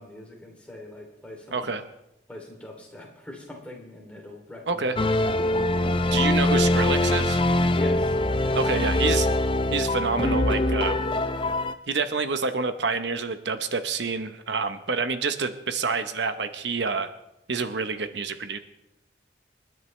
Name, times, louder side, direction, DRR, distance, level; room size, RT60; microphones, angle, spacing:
voice 1, 0.0-1.7 2.3-5.5 7.7-8.6, left 1 dB, 5° left, -1 dB, 2.8 m, -43 dB
voice 2, 1.5-1.8 4.7-5.0 6.0-7.4 8.5-9.3 9.7-11.0 11.9-17.1 17.5-18.6, right 4 dB, 80° right, 9 dB, 0.9 m, -27 dB
sound 1, 5.0-11.7, left 1 dB, 30° left, 0.5 m, -23 dB
28.0 x 10.5 x 3.2 m, 0.86 s
head